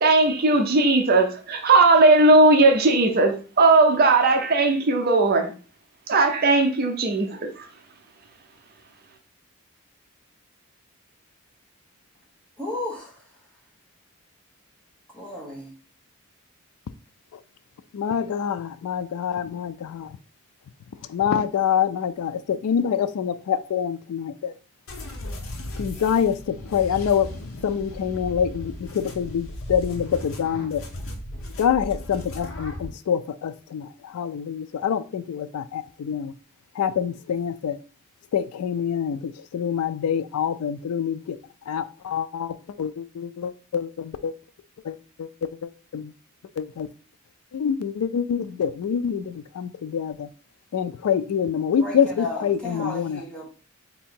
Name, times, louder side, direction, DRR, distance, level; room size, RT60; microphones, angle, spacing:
voice 1, 0.0-5.5 6.1-7.7, right 2 dB, 45° right, 0.6 m, -18 dB
voice 2, 12.6-13.1 15.2-15.7 51.8-53.5, left 2 dB, 5° left, 1.2 m, -33 dB
voice 3, 17.9-20.1 21.1-24.5 25.8-27.3 27.6-30.8 31.6-33.9 34.1-36.3 36.8-37.8 38.3-41.2 41.7-44.3 44.9-45.3 45.9-46.1 46.6-46.9 47.5-50.3 50.7-53.2, left 8 dB, 85° left, 0.3 m, -26 dB
sound 1, 24.9-32.9, left 1 dB, 65° left, 0.8 m, -36 dB
3.6 x 2.8 x 4.3 m
head